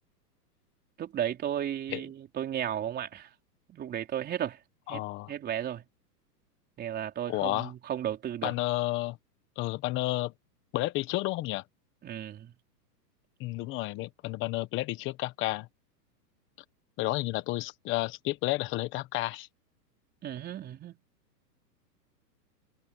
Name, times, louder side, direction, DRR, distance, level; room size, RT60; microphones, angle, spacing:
voice 1, 1.0-3.3 3.7-4.6 4.9-5.0 5.3-5.8 6.8-8.5 12.0-12.5 20.2-21.0, right 10 dB, 20° right, 4.1 m, -34 dB
voice 2, 4.9-5.3 7.3-7.7 8.4-9.2 9.6-10.3 10.7-11.6 13.4-15.7 17.0-19.5, left 18 dB, 25° left, 1.2 m, -31 dB
hypercardioid pair, 150°, 50 cm